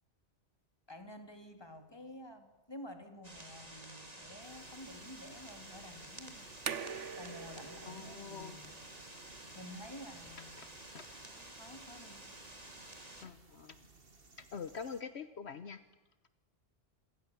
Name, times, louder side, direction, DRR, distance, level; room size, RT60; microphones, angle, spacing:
voice 1, 0.9-6.5 7.2-8.8 9.1-10.6 11.4-12.3, left 1 dB, 20° left, 6 dB, 3.0 m, -51 dB
sound 1, 3.2-13.3, right 1 dB, 35° right, 3.1 m, -51 dB
sound 2, 4.4-15.0, right 3 dB, 55° right, 2.3 m, -61 dB
sound 3, 6.4-13.0, right 7 dB, 85° right, 1.5 m, -47 dB
voice 2, 7.9-8.6 10.9-11.0 13.2-13.8 14.5-15.8, left 6 dB, 65° left, 12 dB, 1.3 m, -44 dB
28.0 x 23.5 x 7.3 m, 1.1 s
omnidirectional pair, 1.2 m